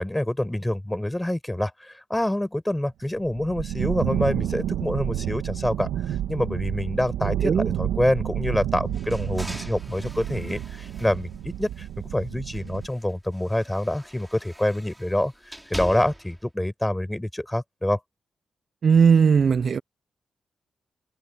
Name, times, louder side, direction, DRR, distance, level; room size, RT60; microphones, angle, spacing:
voice 1, 0.0-7.5 7.8-18.0, left 1 dB, 10° left, 5.6 m, -26 dB
sound 1, 3.1-12.9, right 11 dB, 85° right, 2.0 m, -30 dB
voice 2, 7.4-7.7 18.8-19.8, right 6 dB, 60° right, 0.6 m, -18 dB
sound 2, 8.9-12.1 12.5-16.4, right 1 dB, 5° right, 4.7 m, -42 dB
supercardioid pair, 50°, 0 cm